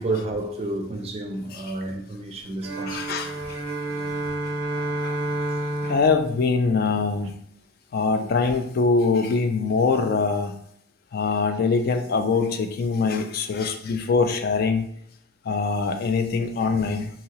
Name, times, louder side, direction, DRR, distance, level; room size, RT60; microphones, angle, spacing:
voice 1, 0.0-3.5 5.9-6.0, right 2 dB, 30° right, 0.4 m, -31 dB
sound 1, 2.6-7.3, right 1 dB, 90° right, 0.4 m, -30 dB
voice 2, 2.9-3.6 5.0-5.2 5.8-7.3 7.9-10.5 11.1-14.8 15.5-17.1, left 4 dB, 50° left, 0.3 m, -23 dB
2.8 x 2.8 x 2.8 m
head